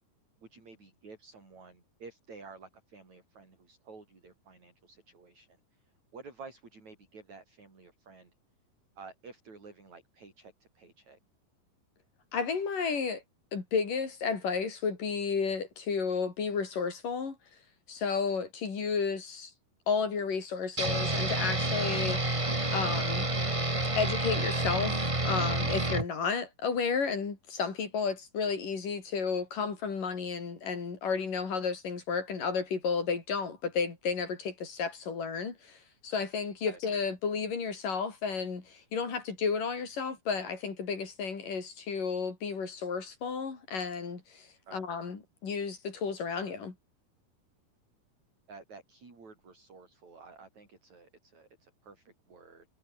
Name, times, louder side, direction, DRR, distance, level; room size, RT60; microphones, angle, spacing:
voice 1, 0.4-8.3 9.0-11.2 36.7-36.8 44.7-44.8 48.5-52.7, right 4 dB, 50° right, 8.0 m, -52 dB
voice 2, 12.3-13.2 13.5-17.4 17.9-19.5 19.9-22.4 22.7-23.3 24.0-35.8 36.0-46.7, left 5 dB, 60° left, 6.2 m, -32 dB
sound 1, 20.8-26.0, right 2 dB, 15° right, 1.4 m, -29 dB
omnidirectional pair, 4.3 m